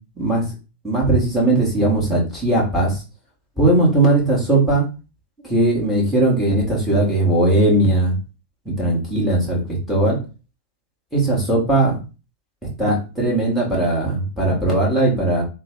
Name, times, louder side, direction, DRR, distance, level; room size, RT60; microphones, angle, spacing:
voice 1, 0.2-0.5 0.8-3.0 3.6-4.8 5.4-8.1 8.7-9.6 9.9-10.2 11.1-12.0 12.8-15.4, right 2 dB, ahead, -4 dB, 1.9 m, -18 dB
3.3 x 2.2 x 3.7 m, 0.32 s
figure-of-eight pair, 90°, 0 cm